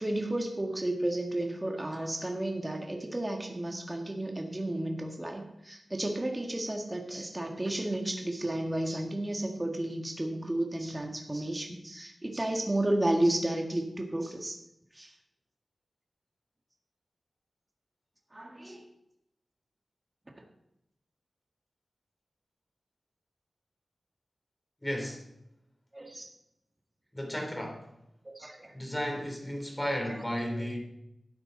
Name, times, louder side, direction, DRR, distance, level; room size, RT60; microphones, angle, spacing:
voice 1, 0.0-14.6 14.9-15.1 18.3-18.8 20.3-20.4 25.9-26.3 28.2-28.7 30.0-30.2 30.6-30.7, right 1 dB, 25° right, 2 dB, 1.7 m, -32 dB
voice 2, 24.8-25.2 27.1-27.9 28.7-30.8, equal, 15° left, 2 dB, 3.2 m, -34 dB
12.5 x 8.9 x 4.0 m, 0.82 s
cardioid pair, 50°, 0 cm